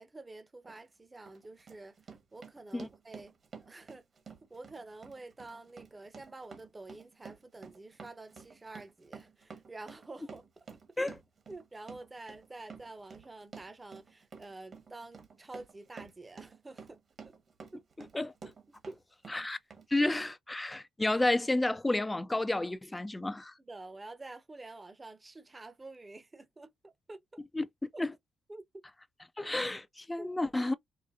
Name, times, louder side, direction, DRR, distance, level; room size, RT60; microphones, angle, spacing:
voice 1, 0.0-3.3 3.6-4.1 4.5-10.7 11.5-17.3 17.7-17.8 18.9-19.3 23.6-27.4 27.9-28.0 28.5-28.6 30.2-30.3, right 2 dB, 20° right, 0.8 m, -48 dB
Run, 0.6-0.8 1.3-19.0 19.2-19.9 20.1-20.2, right 5 dB, 50° right, 1.4 m, -51 dB
voice 2, 18.0-18.3 19.3-19.6 19.9-23.5 27.5-27.7 28.0-28.1 29.4-30.7, left 2 dB, 15° left, 0.5 m, -31 dB
4.8 x 2.1 x 2.6 m
cardioid pair, 90°, 0 cm